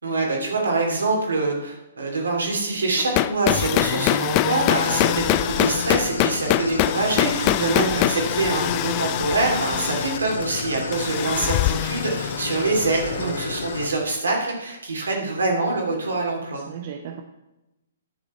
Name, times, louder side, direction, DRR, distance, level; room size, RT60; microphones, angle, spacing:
voice 1, 0.0-16.7, right 3 dB, 75° right, 0 dB, 3.1 m, -25 dB
sound 1, 3.0-13.8, left 15 dB, 35° left, 0.3 m, -24 dB
Idling, 4.7-13.9, left 4 dB, 70° left, 1.1 m, -31 dB
voice 2, 7.4-8.1 13.2-13.4 16.7-17.2, right 7 dB, 50° right, 4 dB, 0.8 m, -32 dB
11.0 x 6.6 x 4.5 m, 0.96 s
figure-of-eight pair, 125°, 0 cm